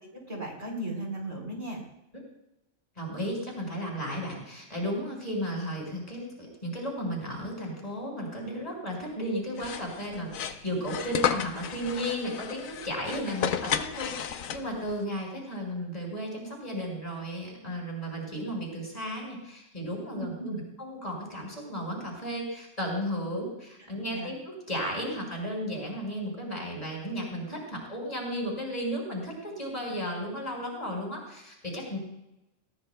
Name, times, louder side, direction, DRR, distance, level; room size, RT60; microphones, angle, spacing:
voice 1, 0.3-1.8 20.1-20.6 24.1-24.3, right 1 dB, 55° right, 0 dB, 4.1 m, -36 dB
voice 2, 3.0-32.0, equal, 30° left, -2 dB, 4.9 m, -34 dB
sound 1, 9.6-14.9, left 8 dB, 85° left, 1.2 m, -32 dB
20.0 x 18.5 x 2.2 m, 0.90 s
omnidirectional pair, 1.4 m